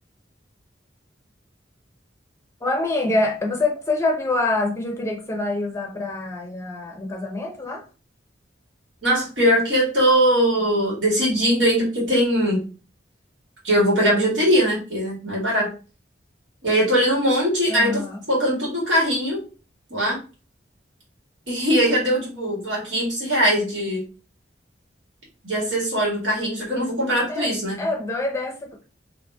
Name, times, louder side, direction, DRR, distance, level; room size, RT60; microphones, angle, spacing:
voice 1, 2.6-7.8 17.7-18.2 27.3-28.8, left 2 dB, 15° left, 1 dB, 0.6 m, -25 dB
voice 2, 9.0-12.7 13.6-15.7 16.6-19.4 19.9-20.2 21.5-24.1 25.4-27.8, equal, 80° right, -5 dB, 1.9 m, -21 dB
2.9 x 2.8 x 3.4 m, 0.35 s
head